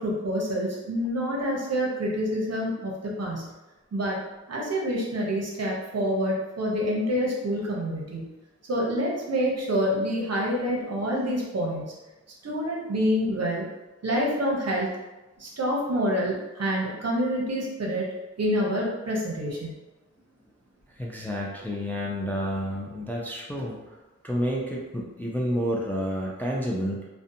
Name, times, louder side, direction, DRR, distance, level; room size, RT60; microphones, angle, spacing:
voice 1, 0.0-3.5 3.9-4.2 4.5-8.3 8.7-11.9 12.4-13.7 14.0-14.9 15.4-18.1 18.4-19.7, equal, 55° right, -3 dB, 0.7 m, -27 dB
voice 2, 21.0-24.0 24.2-27.1, equal, 5° left, -3 dB, 0.3 m, -30 dB
2.6 x 2.1 x 2.5 m, 1.1 s
wide cardioid pair, 85°, 30 cm